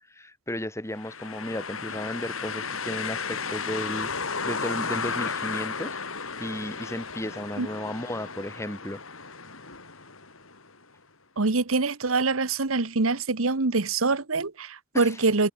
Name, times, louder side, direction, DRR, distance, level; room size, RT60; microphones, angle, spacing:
voice 1, 0.0-4.1 4.4-6.0 6.4-9.0 14.9-15.2, left 1 dB, 15° left, 3.8 m, -34 dB
sound 1, 1.0-10.8, left 5 dB, 85° left, 7.9 m, -34 dB
voice 2, 11.4-15.5, right 3 dB, 85° right, 1.3 m, -25 dB
head